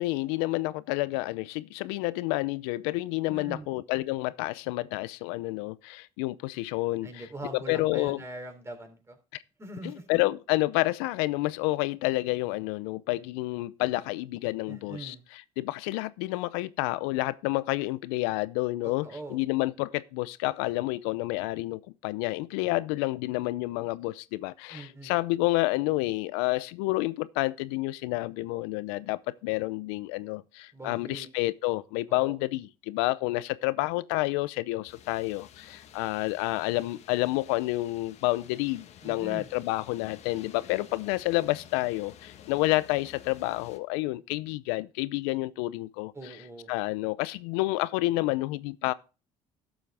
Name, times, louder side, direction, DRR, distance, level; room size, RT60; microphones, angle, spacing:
voice 1, 0.0-7.3 7.5-8.2 9.3-9.4 9.8-46.4 46.7-48.9, left 20 dB, 85° left, 0.6 m, -29 dB
voice 2, 3.3-3.7 7.0-9.2 9.6-10.0 14.7-15.2 18.8-19.4 24.7-25.2 30.7-31.3 32.1-32.4 39.0-39.5 46.1-46.7, right 2 dB, 20° right, 3.5 m, -42 dB
sound 1, 34.8-43.8, left 9 dB, 60° left, 1.3 m, -52 dB
12.0 x 7.6 x 3.4 m
supercardioid pair, 80°, 13 cm